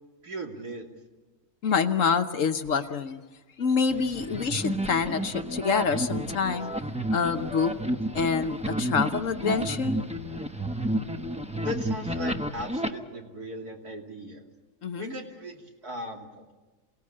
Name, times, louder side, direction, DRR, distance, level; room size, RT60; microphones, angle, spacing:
voice 1, 0.2-0.9 11.3-14.4 15.0-16.5, equal, 75° right, 1 dB, 3.4 m, -38 dB
voice 2, 1.6-3.2 3.6-6.7 7.1-7.7 8.1-10.0 14.8-15.1, left 5 dB, 60° left, 9 dB, 1.2 m, -26 dB
sound 1, 3.9-12.9, right 1 dB, 5° right, 0.7 m, -31 dB
28.0 x 18.0 x 8.6 m, 1.2 s
omnidirectional pair, 1.6 m